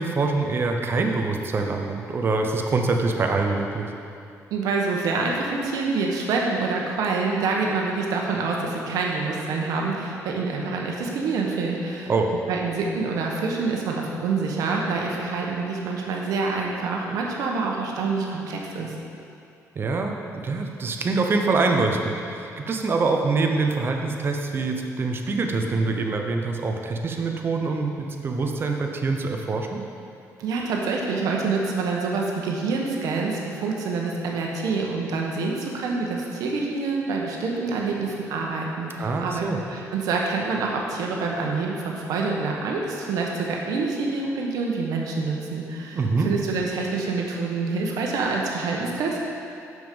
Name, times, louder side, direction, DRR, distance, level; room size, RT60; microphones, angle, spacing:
voice 1, 0.0-3.9 12.1-12.3 19.7-29.8 39.0-39.6 45.9-46.3, right 3 dB, 40° right, 3 dB, 0.8 m, -25 dB
voice 2, 4.5-12.1 12.5-18.9 30.4-49.2, right 4 dB, 85° right, -1 dB, 1.1 m, -26 dB
7.1 x 6.4 x 5.2 m, 2.5 s
cardioid pair, 120°, 6 cm